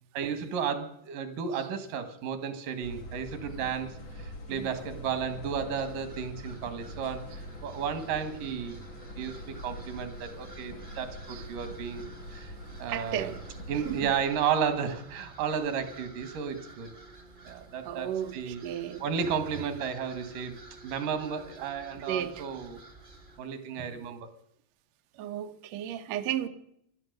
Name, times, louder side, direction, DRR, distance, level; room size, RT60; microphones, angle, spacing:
voice 1, 0.1-7.3 7.6-8.8 9.2-12.0 12.3-12.5 12.8-13.3 13.7-16.9 17.4-18.6 19.0-20.6 20.8-22.8 23.4-24.3, right 7 dB, 90° right, 10 dB, 3.2 m, -33 dB
sound 1, 2.8-14.2, equal, 55° left, 3.1 m, -44 dB
sound 2, 5.7-23.4, right 2 dB, 25° right, 1.1 m, -51 dB
voice 2, 12.9-13.4 13.8-14.1 17.9-19.0 22.0-22.4 23.8-23.9 25.1-26.5, right 10 dB, 65° right, 7 dB, 1.9 m, -34 dB
15.5 x 12.0 x 6.6 m, 0.73 s
omnidirectional pair, 3.6 m